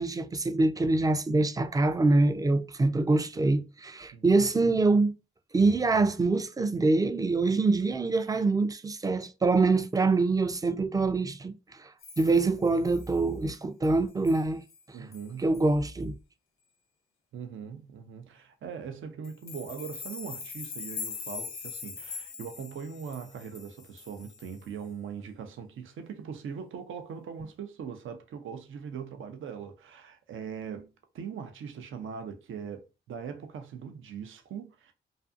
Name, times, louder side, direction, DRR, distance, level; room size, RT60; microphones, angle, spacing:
voice 1, 0.0-5.1 5.5-14.6 15.0-15.1 15.4-16.1, right 3 dB, 15° right, 0.4 m, -25 dB
sound 1, 12.0-13.2 13.8-14.0 14.2-14.4 14.7-14.8 15.1-15.3 15.5-15.7 19.2-24.7, left 6 dB, 70° left, 0.6 m, -42 dB
voice 2, 14.9-15.5 17.3-30.9 31.1-34.9, right 7 dB, 70° right, 0.5 m, -40 dB
2.5 x 2.4 x 2.5 m
supercardioid pair, 55°, 21 cm